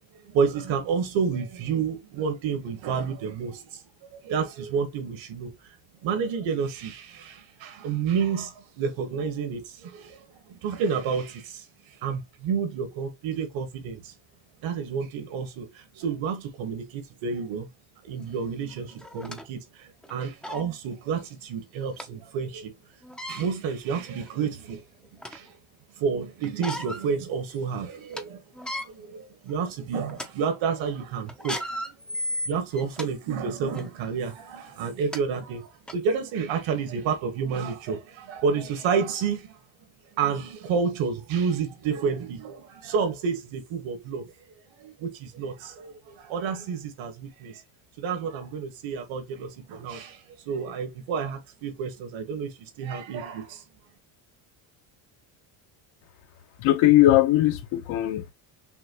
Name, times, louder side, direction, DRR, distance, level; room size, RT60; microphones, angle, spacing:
voice 1, 0.2-3.8 4.2-5.5 6.0-11.6 12.0-14.1 14.6-17.7 18.0-22.7 23.3-24.8 25.3-25.5 26.0-28.4 28.7-31.8 32.4-39.5 40.2-44.3 44.8-47.6 48.0-50.2 50.5-53.6, right 6 dB, 70° right, 1.4 m, -30 dB
sound 1, 18.2-18.3 19.0-19.4 20.0-20.1 20.4-20.7 22.0-22.1 23.0-23.4 24.2-24.3 24.8-25.5 26.4-27.1 27.5-27.6 27.9-28.2 28.5-28.9 29.5-29.7 30.1-30.3 31.3-33.1 33.7-33.9 34.7-34.8 35.1-35.2 35.9-36.0, left 1 dB, ahead, 0.4 m, -34 dB
voice 2, 56.6-58.3, left 14 dB, 75° left, 1.0 m, -19 dB
6.0 x 2.3 x 2.9 m
cardioid pair, 125°, 48 cm